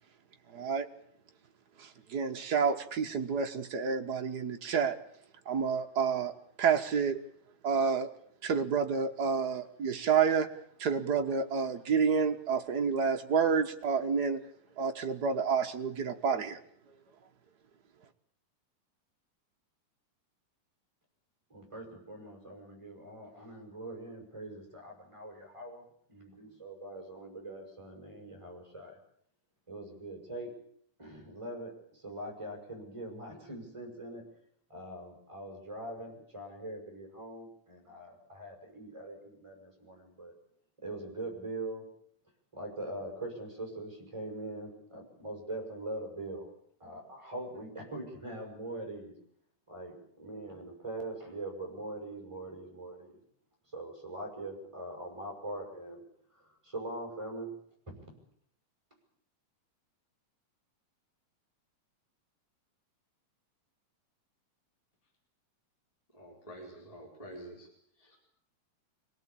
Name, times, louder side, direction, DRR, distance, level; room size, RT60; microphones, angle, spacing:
voice 1, 0.5-0.9 2.1-5.0 5.5-6.3 6.6-7.2 7.6-8.1 8.4-10.5 10.8-14.4 14.8-16.6, right 6 dB, 60° right, 5 dB, 1.0 m, -29 dB
voice 2, 21.5-25.8 26.1-29.0 29.7-30.5 31.0-34.3 34.7-40.3 40.8-41.9 42.5-46.5 46.8-49.1 49.7-53.2 53.7-56.0 56.4-57.6 57.9-58.0, right 1 dB, 10° right, 2 dB, 6.4 m, -42 dB
voice 3, 66.1-67.7 68.0-68.2, right 1 dB, 10° left, -1 dB, 4.6 m, -48 dB
24.5 x 18.0 x 8.6 m, 0.65 s
omnidirectional pair, 3.6 m